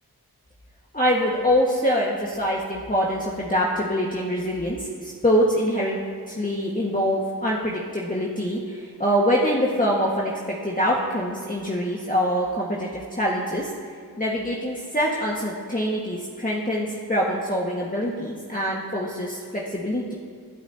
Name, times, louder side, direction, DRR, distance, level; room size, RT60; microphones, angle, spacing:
voice 1, 0.9-6.0 6.3-13.7 14.2-20.1, equal, 20° left, -5 dB, 1.7 m, -24 dB
24.5 x 8.7 x 2.9 m, 2.1 s
cardioid pair, 45°, 38 cm